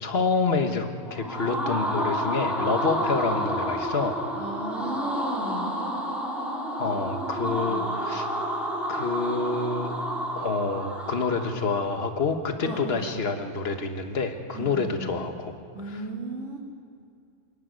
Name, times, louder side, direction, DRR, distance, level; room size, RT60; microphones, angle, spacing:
voice 1, 0.0-4.2 6.7-8.3 8.9-9.9 10.3-15.5 15.9-16.0, left 4 dB, 60° left, 6 dB, 1.6 m, -28 dB
sound 1, 1.0-11.9, equal, ahead, 3.2 m, -30 dB
voice 2, 4.3-5.8 7.0-7.9 12.6-13.0 14.5-15.2 15.7-16.6, right 2 dB, 90° right, -5 dB, 3.0 m, -36 dB
26.5 x 10.5 x 9.5 m, 2.3 s
omnidirectional pair, 1.2 m